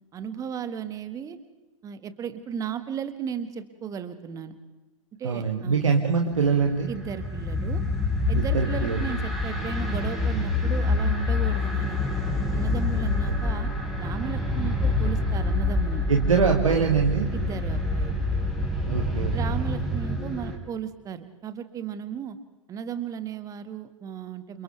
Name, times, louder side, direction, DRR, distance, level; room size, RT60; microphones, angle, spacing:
voice 1, 0.1-1.4 1.8-4.5 5.2-5.8 6.9-7.8 8.3-12.0 12.5-13.7 14.0-16.1 17.3-18.2 19.3-22.4 22.7-24.6, right 7 dB, 20° right, 10 dB, 1.9 m, -35 dB
voice 2, 5.2-6.9 8.3-9.0 13.3-13.4 16.1-17.3 18.9-19.3, right 5 dB, 70° right, 1 dB, 2.6 m, -23 dB
sound 1, 6.3-20.6, left 2 dB, ahead, 4.6 m, -27 dB
29.5 x 29.0 x 3.5 m, 1.1 s
figure-of-eight pair, 105°, 17 cm